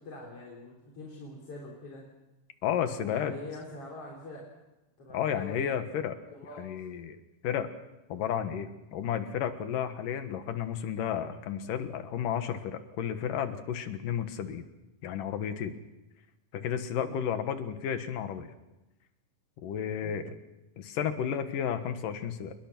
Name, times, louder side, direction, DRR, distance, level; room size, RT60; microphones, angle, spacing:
voice 1, 0.0-2.0 3.0-4.4 5.0-5.7 6.3-6.9 17.0-17.1 20.0-20.2, left 2 dB, 45° left, -2 dB, 4.4 m, -44 dB
voice 2, 2.6-3.3 5.1-6.2 6.6-7.2 7.4-7.7 8.1-14.6 15.0-15.7 16.5-18.5 19.6-20.3 20.8-22.5, left 8 dB, 90° left, 9 dB, 3.1 m, -32 dB
28.0 x 21.5 x 6.1 m, 0.97 s
omnidirectional pair, 3.7 m